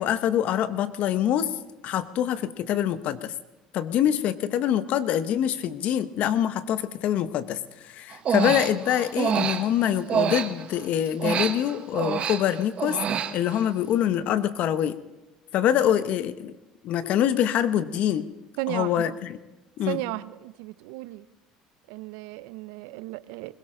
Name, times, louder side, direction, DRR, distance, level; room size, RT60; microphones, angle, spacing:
voice 1, 0.0-1.5 1.8-3.3 3.7-13.0 13.3-15.0 15.5-16.5 16.8-18.3 18.7-19.4 19.8-20.0, left 10 dB, 60° left, 0.9 m, -25 dB
Human voice, 8.1-10.8 11.2-13.7, right 7 dB, 45° right, 1.2 m, -27 dB
voice 2, 18.6-19.2 19.9-21.3 21.9-23.5, right 19 dB, 80° right, 0.5 m, -34 dB
21.0 x 16.5 x 3.8 m
supercardioid pair, 80°, 3 cm